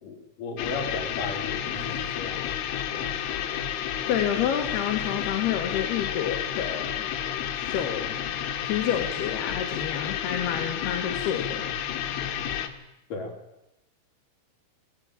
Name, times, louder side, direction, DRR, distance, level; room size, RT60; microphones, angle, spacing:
voice 1, 0.0-2.5 2.9-3.1 13.1-13.3, left 3 dB, 45° left, 0 dB, 5.2 m, -35 dB
sound 1, 0.6-12.7, left 10 dB, 80° left, 3.9 m, -31 dB
voice 2, 4.1-7.1 7.6-8.1 8.6-11.6, left 9 dB, 65° left, 4 dB, 3.2 m, -29 dB
19.0 x 17.5 x 9.1 m, 0.88 s
omnidirectional pair, 5.7 m